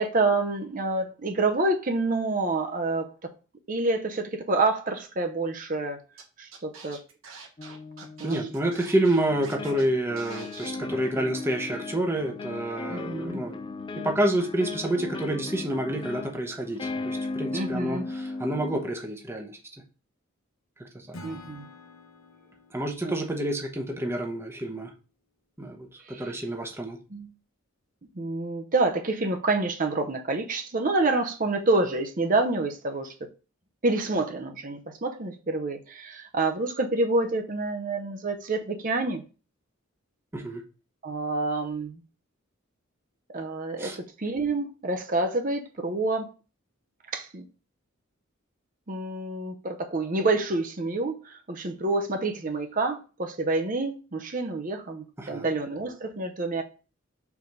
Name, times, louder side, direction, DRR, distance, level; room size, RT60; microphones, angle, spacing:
voice 1, 0.0-3.1 3.7-6.0 6.4-7.0 8.2-8.4 12.9-13.4 17.5-18.1 21.2-21.6 23.0-23.1 26.0-26.2 27.1-27.3 28.2-33.1 33.8-39.2 41.0-42.0 43.3-46.3 47.1-47.4 48.9-56.6, right 2 dB, 40° right, 0.7 m, -28 dB
Scratching (performance technique), 6.2-6.3 6.5-9.8 10.2-10.7, right 5 dB, 80° right, 1.5 m, -45 dB
sound 1, 7.6-8.7 9.3-18.9, left 3 dB, 25° left, 0.3 m, -37 dB
voice 2, 8.2-13.6 13.9-19.6 20.8-21.2 22.7-24.9 25.6-27.0 40.3-40.6 43.8-44.0 55.2-55.5, right 1 dB, 10° right, 0.8 m, -28 dB
Acoustic guitar / Strum, 21.1-24.3, left 1 dB, 80° left, 0.9 m, -48 dB
4.7 x 4.0 x 5.4 m
head